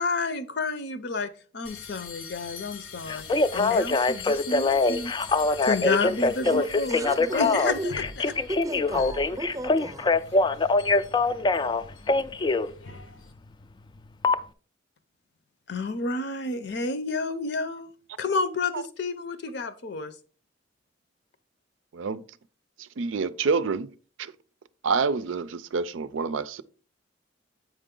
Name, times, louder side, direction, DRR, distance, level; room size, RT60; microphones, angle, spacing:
voice 1, 0.0-5.1 5.6-7.9 15.7-17.9 18.2-20.1, left 3 dB, 60° left, 0.7 m, -30 dB
sound 1, 1.6-13.3, left 6 dB, 90° left, 0.9 m, -43 dB
Telephone, 3.1-12.7 14.2-14.4, left 3 dB, 25° left, 0.3 m, -23 dB
voice 2, 6.4-7.9 8.5-10.2, right 1 dB, 20° right, 0.6 m, -35 dB
voice 3, 22.8-23.9 24.2-24.3 24.8-26.6, right 4 dB, 90° right, 0.5 m, -27 dB
8.0 x 5.0 x 3.7 m
head